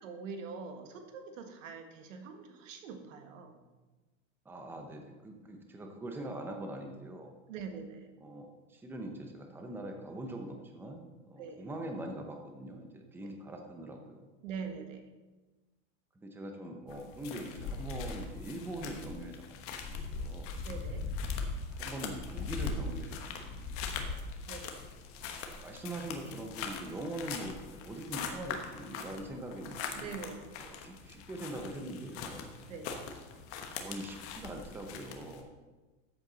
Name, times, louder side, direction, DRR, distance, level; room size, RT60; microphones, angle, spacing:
voice 1, 0.0-3.6 7.5-8.1 11.4-11.7 14.4-15.0 20.6-21.1 24.5-24.8 29.9-30.4 32.7-33.0, right 5 dB, 90° right, 5 dB, 1.8 m, -43 dB
voice 2, 4.4-7.3 8.2-14.3 16.1-20.6 21.7-24.2 25.6-30.2 30.6-32.4 33.8-35.5, right 1 dB, 5° right, 3 dB, 0.8 m, -43 dB
sound 1, 16.9-35.4, left 4 dB, 35° left, 1.2 m, -41 dB
13.0 x 8.0 x 4.0 m, 1.2 s
supercardioid pair, 160°, 37 cm